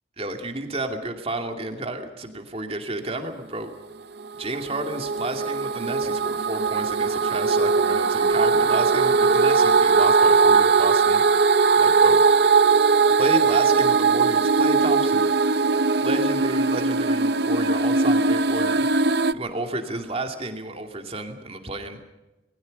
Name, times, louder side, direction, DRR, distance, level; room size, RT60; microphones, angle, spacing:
voice 1, 0.2-3.7 4.4-11.2 11.8-12.2 13.2-15.2 16.0-18.9 19.3-22.0, right 2 dB, 30° right, 4 dB, 2.5 m, -31 dB
sound 1, 4.2-19.3, right 4 dB, 60° right, 0.7 m, -20 dB
28.0 x 21.0 x 5.4 m, 1.0 s
head